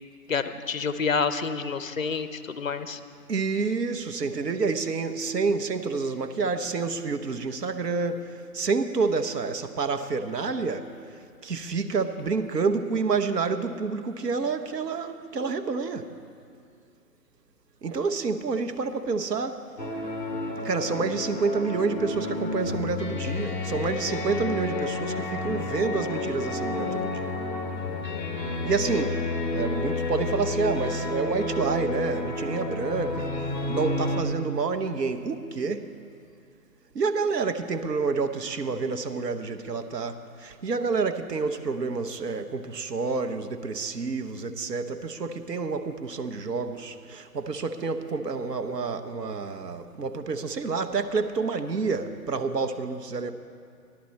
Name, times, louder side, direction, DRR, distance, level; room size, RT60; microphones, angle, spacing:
voice 1, 0.3-3.0, left 5 dB, 55° left, 0.6 m, -28 dB
voice 2, 3.3-16.1 17.8-19.7 20.6-27.3 28.6-33.3 33.7-35.9 36.9-53.3, right 4 dB, 85° right, 1.0 m, -28 dB
sound 1, 19.8-34.2, left 2 dB, 30° left, 0.9 m, -30 dB
14.0 x 11.0 x 4.2 m
hypercardioid pair, 175°, 47 cm